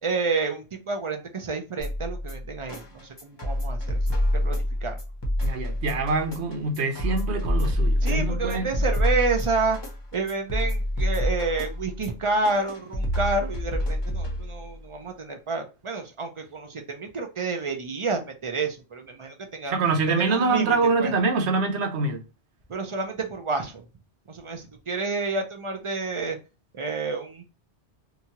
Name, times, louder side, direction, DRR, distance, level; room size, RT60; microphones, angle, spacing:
voice 1, 0.0-4.9 8.0-9.8 10.1-19.8 20.1-21.1 22.7-23.8 24.3-26.4 26.7-27.4, right 3 dB, 40° right, 0.5 m, -29 dB
sound 1, 1.8-14.8, left 1 dB, 25° left, 0.7 m, -27 dB
voice 2, 5.4-8.7 19.7-22.2, right 3 dB, 90° right, 1.0 m, -25 dB
2.9 x 2.4 x 2.8 m
omnidirectional pair, 1.1 m